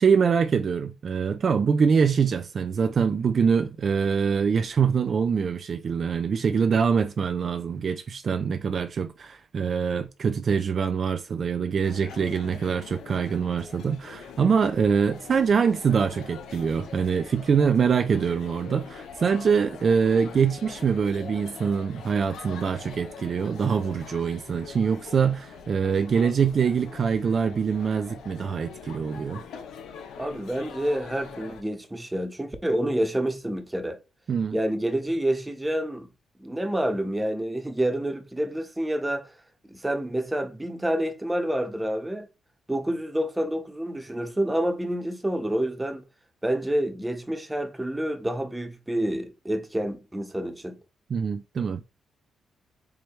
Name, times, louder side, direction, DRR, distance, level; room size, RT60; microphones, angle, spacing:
voice 1, 0.0-29.4 34.3-34.6 51.1-51.8, right 6 dB, 55° right, 0.4 m, -24 dB
sound 1, 11.8-31.6, left 6 dB, 80° left, 0.7 m, -43 dB
voice 2, 30.2-34.0 34.5-36.1 36.4-39.3 39.7-42.3 42.7-46.0 46.4-50.8, right 1 dB, 10° right, 1.0 m, -28 dB
4.7 x 3.0 x 3.1 m
supercardioid pair, 60°, 0 cm